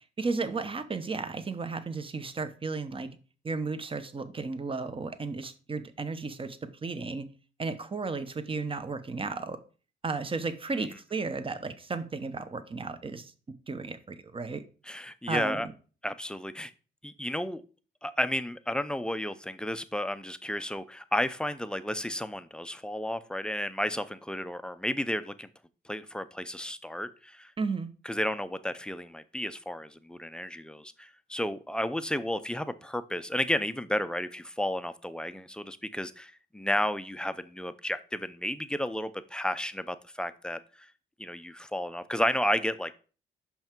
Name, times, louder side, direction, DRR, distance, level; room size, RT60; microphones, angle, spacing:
voice 1, 0.2-3.1 3.4-7.3 7.6-9.6 10.0-13.3 13.7-14.6 15.3-15.7 27.6-27.9, right 4 dB, 25° right, 11 dB, 0.9 m, -34 dB
voice 2, 14.9-15.7 16.0-16.7 17.0-17.6 18.0-25.5 25.8-27.5 28.0-40.9 41.2-42.9, left 1 dB, 5° left, 12 dB, 0.5 m, -32 dB
5.6 x 5.6 x 4.5 m, 0.38 s
cardioid pair, 90°, 20 cm